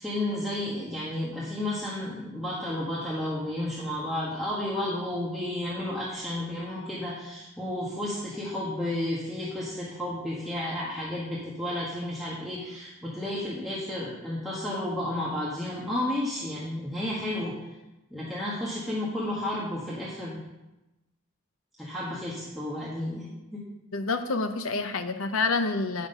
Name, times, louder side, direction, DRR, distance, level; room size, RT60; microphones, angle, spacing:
voice 1, 0.0-17.5 18.1-20.4 21.8-23.6, left 1 dB, ahead, -8 dB, 1.4 m, -32 dB
voice 2, 23.9-26.1, left 3 dB, 75° left, 8 dB, 0.8 m, -28 dB
8.8 x 6.0 x 5.5 m, 1.0 s
head